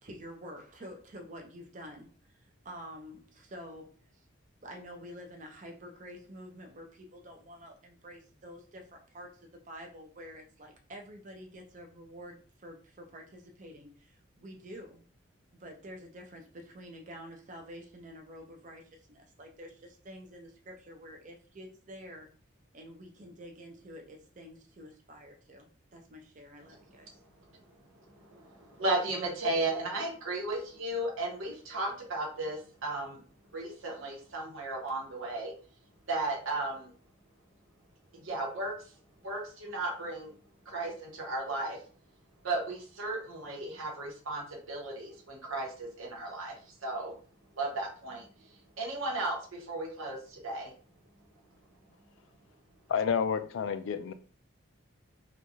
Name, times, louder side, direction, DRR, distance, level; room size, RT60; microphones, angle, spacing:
voice 1, 0.0-3.9 4.6-15.1 15.6-22.3 22.7-27.1, equal, 40° right, 2 dB, 0.5 m, -48 dB
voice 2, 28.1-33.2 33.5-35.5 36.1-36.9 38.1-38.7 39.2-40.3 40.6-41.8 42.4-47.1 47.6-48.3 48.8-50.7, right 2 dB, 90° right, -1 dB, 1.1 m, -35 dB
voice 3, 52.9-54.1, left 6 dB, 75° left, 10 dB, 0.3 m, -29 dB
3.1 x 2.3 x 2.6 m, 0.40 s
head